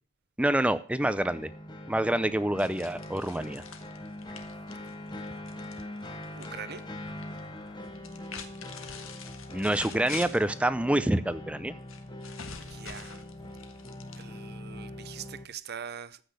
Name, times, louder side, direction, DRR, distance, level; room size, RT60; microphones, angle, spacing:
voice 1, 0.4-1.5 1.9-3.6 9.5-11.7, right 1 dB, 5° right, 0.5 m, -27 dB
sound 1, 1.0-15.5, left 1 dB, 20° left, 1.6 m, -42 dB
sound 2, 2.6-6.5 6.8-7.4 7.9-10.6 11.9-14.6, left 6 dB, 70° left, 1.6 m, -45 dB
voice 2, 6.3-6.8 12.6-13.2 14.2-16.2, right 7 dB, 50° right, 0.8 m, -42 dB
14.5 x 6.0 x 8.1 m
head